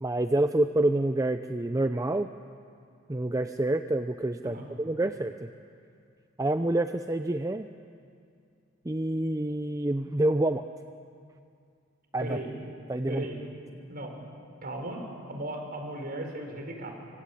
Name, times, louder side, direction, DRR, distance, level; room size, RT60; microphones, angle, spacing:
voice 1, 0.0-2.3 3.1-5.5 6.4-7.7 8.8-10.6 12.1-12.4 12.9-13.3, right 1 dB, 15° right, 8 dB, 0.6 m, -27 dB
voice 2, 12.2-12.6 13.1-13.4 13.9-14.2 14.6-16.9, right 1 dB, 45° right, 3 dB, 4.9 m, -36 dB
26.5 x 25.0 x 8.5 m, 2.3 s
head